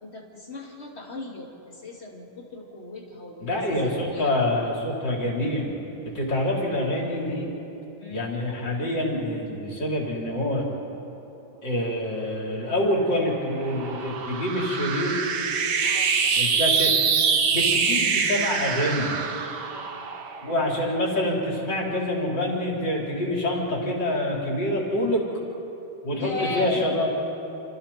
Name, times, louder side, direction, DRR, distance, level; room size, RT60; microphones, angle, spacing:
voice 1, 0.0-4.4 8.0-8.4 15.8-16.2 19.7-20.1 26.1-27.1, left 2 dB, 30° left, 0 dB, 3.0 m, -37 dB
voice 2, 3.4-5.7 6.1-7.5 8.1-10.7 11.6-15.1 16.3-16.9 17.5-19.1 20.4-25.2 26.0-27.1, left 1 dB, 65° left, -3 dB, 4.9 m, -26 dB
sound 1, 12.7-21.4, right 5 dB, 60° right, 1.8 m, -25 dB
30.0 x 28.0 x 4.4 m, 3.0 s
omnidirectional pair, 2.1 m